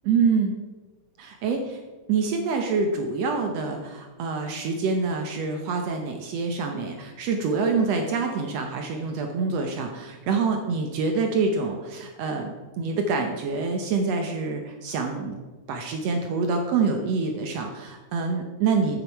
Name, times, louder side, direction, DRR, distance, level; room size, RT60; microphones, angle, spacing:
voice 1, 0.1-0.5 1.2-1.6 2.1-15.4 15.7-19.0, right 4 dB, 70° right, 4 dB, 1.8 m, -26 dB
9.0 x 7.9 x 4.6 m, 1.2 s
omnidirectional pair, 3.4 m